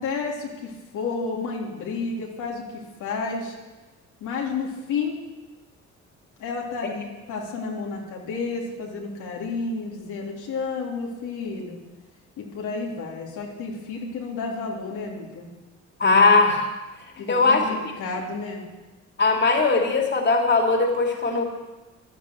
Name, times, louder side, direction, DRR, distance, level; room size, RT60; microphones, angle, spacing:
voice 1, 0.0-2.6 3.0-3.5 4.2-5.2 6.4-11.8 12.4-15.5 17.2-18.6, left 4 dB, 85° left, -2 dB, 3.5 m, -31 dB
voice 2, 16.0-16.7 17.3-17.6 19.2-21.5, left 3 dB, 35° left, 2 dB, 2.9 m, -19 dB
15.0 x 11.0 x 7.8 m, 1.1 s
cardioid pair, 90°, 30 cm